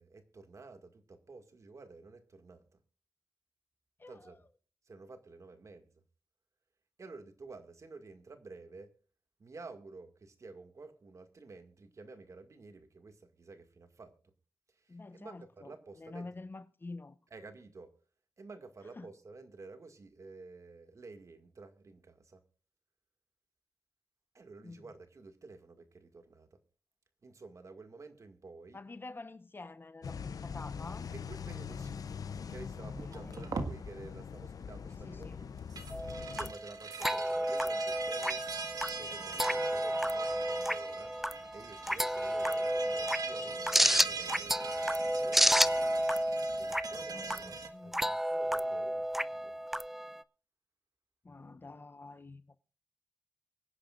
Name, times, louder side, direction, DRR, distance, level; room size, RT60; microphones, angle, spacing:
voice 1, 0.0-2.6 4.1-4.4 4.9-5.9 7.0-8.9 9.4-14.1 14.7-16.3 17.3-17.9 18.4-22.4 24.3-26.6 27.2-28.8 31.1-32.0 32.5-35.8 36.3-38.4 38.9-41.1 41.5-45.4 46.5-49.6, right 3 dB, 55° right, 2.0 m, -51 dB
voice 2, 4.0-4.4 14.9-17.2 19.0-19.1 24.6-24.9 28.7-31.1 32.8-33.5 35.0-35.4 47.1-48.1 51.2-52.6, left 3 dB, 35° left, 1.0 m, -48 dB
sound 1, 30.0-36.5, left 6 dB, 80° left, 0.6 m, -42 dB
sound 2, 32.9-33.8 35.6-47.7, right 4 dB, 85° right, 1.7 m, -42 dB
sound 3, 35.9-50.2, equal, 5° right, 0.6 m, -31 dB
24.5 x 10.0 x 2.5 m
wide cardioid pair, 85°, 6 cm